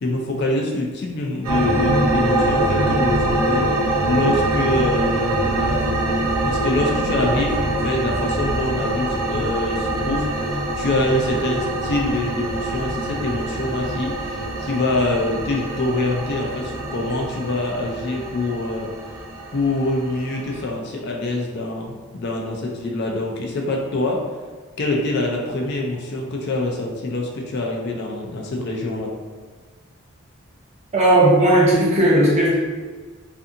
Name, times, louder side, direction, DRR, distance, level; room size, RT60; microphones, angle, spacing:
voice 1, 0.0-3.7 4.1-6.0 6.4-18.9 19.5-24.2 24.8-29.1, left 2 dB, 50° left, 0 dB, 0.4 m, -25 dB
sound 1, 1.4-20.6, right 1 dB, 80° right, 0.6 m, -24 dB
voice 2, 30.9-32.5, right 1 dB, 30° right, -5 dB, 0.6 m, -15 dB
2.6 x 2.5 x 2.5 m, 1.4 s
head